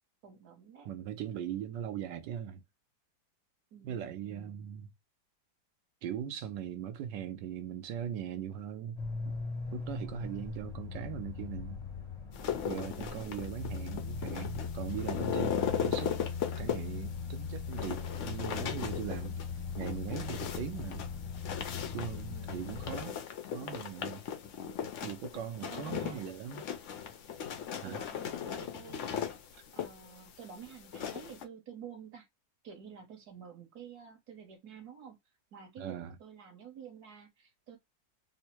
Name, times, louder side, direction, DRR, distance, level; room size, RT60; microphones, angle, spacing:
voice 1, 0.2-0.9 3.7-4.7 13.1-13.8 22.3-22.8 25.6-26.3 27.8-29.2 29.7-32.3 32.6-35.2 35.5-37.8, right 7 dB, 60° right, 1.4 m, -50 dB
voice 2, 0.9-2.6 3.8-4.9 6.0-9.0 9.2-9.3 9.7-11.8 12.6-16.2 16.6-19.4 19.7-21.1 21.9-23.2 23.5-24.2 24.8-26.7 27.8-28.0 35.8-36.2, right 9 dB, 75° right, 1.3 m, -40 dB
sound 1, 9.0-23.0, left 5 dB, 25° left, 0.6 m, -40 dB
sound 2, 12.3-31.4, left 8 dB, 75° left, 0.7 m, -38 dB
3.6 x 2.1 x 4.3 m
omnidirectional pair, 2.0 m